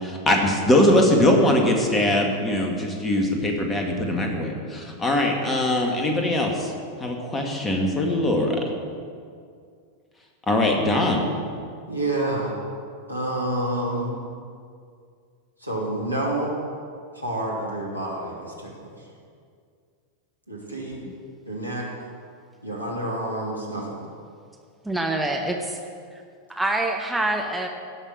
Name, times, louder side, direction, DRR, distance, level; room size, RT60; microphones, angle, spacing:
voice 1, 0.0-6.7 7.0-8.6 10.5-11.2, left 1 dB, 15° left, 1 dB, 2.1 m, -21 dB
voice 2, 11.9-12.5 13.1-14.2 15.6-16.6 17.1-18.9 20.5-21.0 21.5-21.9 22.6-23.9, right 1 dB, 90° right, -3 dB, 2.5 m, -28 dB
voice 3, 24.8-25.8 26.1-26.2 26.5-27.7, right 2 dB, 5° right, 2 dB, 1.0 m, -26 dB
17.0 x 6.4 x 6.4 m, 2.2 s
figure-of-eight pair, 90°, 0 cm